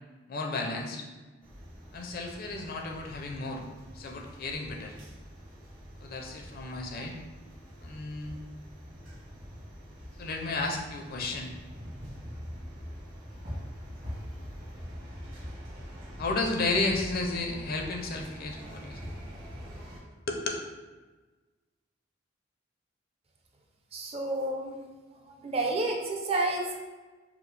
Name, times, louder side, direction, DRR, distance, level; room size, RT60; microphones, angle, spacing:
voice 1, 0.3-1.1 1.9-3.6 3.9-5.0 6.0-7.2 7.8-8.4 10.2-11.5 16.2-19.1 20.3-20.5, left 3 dB, 50° left, 2 dB, 0.5 m, -33 dB
sound 1, 1.4-20.0, equal, 50° right, 1.2 m, -44 dB
voice 2, 23.9-24.8 25.2-26.7, right 2 dB, 30° right, 1 dB, 0.5 m, -30 dB
4.7 x 2.0 x 3.2 m, 1.3 s
head